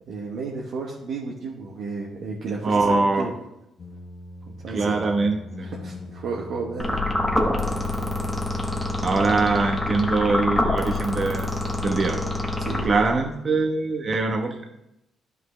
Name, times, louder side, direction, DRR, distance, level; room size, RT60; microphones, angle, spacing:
voice 1, 0.1-3.3 4.5-4.9 5.6-7.0 12.6-13.0, right 4 dB, 70° right, -2 dB, 1.2 m, -32 dB
voice 2, 2.6-3.3 4.7-5.7 9.0-11.5 11.8-12.2 12.8-14.7, right 3 dB, 40° right, 3 dB, 1.0 m, -23 dB
sound 1, 3.8-9.2, left 1 dB, 50° left, 1.0 m, -41 dB
sound 2, 6.8-13.3, left 1 dB, 10° left, 1.1 m, -26 dB
11.0 x 5.4 x 3.3 m, 0.83 s
cardioid pair, 90°, 0 cm